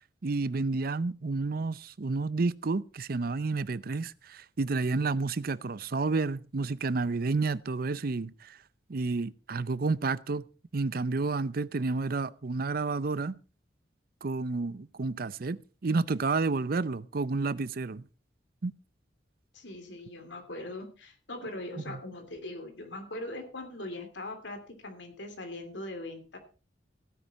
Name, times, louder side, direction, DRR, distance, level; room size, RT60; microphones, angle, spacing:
voice 1, 0.2-8.6 8.9-10.4 10.7-13.4 14.2-18.0 18.6-18.7 21.9-22.0, right 3 dB, 55° right, 0.6 m, -30 dB
voice 2, 19.5-26.4, left 1 dB, 80° left, 2.9 m, -41 dB
16.0 x 9.6 x 4.2 m
head